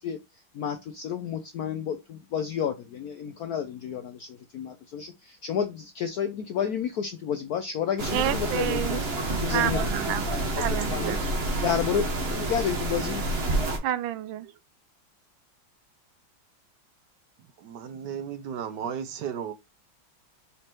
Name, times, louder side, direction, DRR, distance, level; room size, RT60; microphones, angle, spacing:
voice 1, 0.0-9.1 9.4-9.8 10.3-10.6 10.9-11.2 11.6-13.2, left 8 dB, 65° left, 1.0 m, -31 dB
sound 1, 8.0-13.8, right 2 dB, 35° right, 1.3 m, -28 dB
voice 2, 8.1-9.0 9.5-10.3 10.6-11.3 13.8-14.5, right 12 dB, 85° right, 1.3 m, -29 dB
voice 3, 17.6-19.5, right 8 dB, 65° right, 1.3 m, -34 dB
5.0 x 4.2 x 4.4 m
omnidirectional pair, 2.1 m